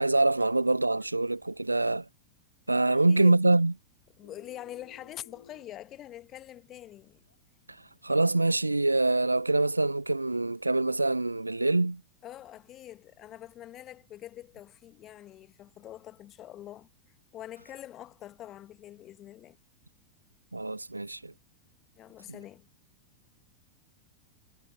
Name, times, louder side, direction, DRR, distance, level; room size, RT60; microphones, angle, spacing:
voice 1, 0.0-2.1 2.7-3.7 8.0-12.0 20.5-21.3, right 2 dB, 85° right, 0.4 m, -25 dB
voice 2, 2.9-3.4 4.2-7.2 12.2-16.9 17.3-19.6 22.0-22.7, left 12 dB, 30° left, 1.9 m, -45 dB
sound 1, 4.2-7.6 8.0-8.2 8.8-9.8, left 7 dB, 70° left, 6.1 m, -58 dB
figure-of-eight pair, 90°, 0 cm